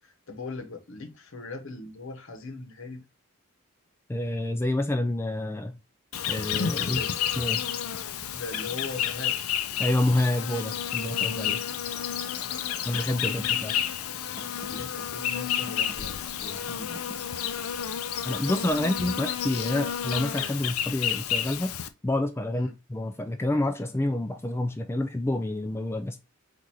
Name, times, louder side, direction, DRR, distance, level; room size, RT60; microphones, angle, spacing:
voice 1, 0.0-3.0 6.8-7.1 8.3-9.4 13.2-13.6 14.7-17.0 18.7-18.8 22.5-22.7, left 3 dB, 60° left, 0.9 m, -40 dB
voice 2, 4.1-5.8 6.3-7.0 7.4-7.6 9.8-11.7 12.8-13.7 18.2-21.7 22.0-26.2, left 1 dB, 10° left, 0.3 m, -28 dB
Insect, 6.1-21.9, left 9 dB, 75° left, 0.5 m, -30 dB
Car, 12.9-18.8, equal, 15° right, 1.0 m, -50 dB
4.2 x 2.5 x 4.5 m
head